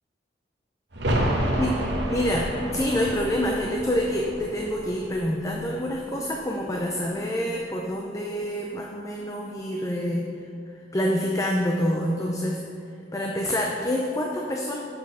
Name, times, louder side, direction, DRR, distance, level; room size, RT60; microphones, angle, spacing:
sound 1, 0.9-6.5 6.8-6.9, right 1 dB, 65° right, 1.1 m, -30 dB
voice 1, 1.6-10.3 10.9-12.6 13.1-14.8, equal, 20° left, 0 dB, 0.5 m, -27 dB
7.3 x 6.3 x 5.5 m, 2.6 s
head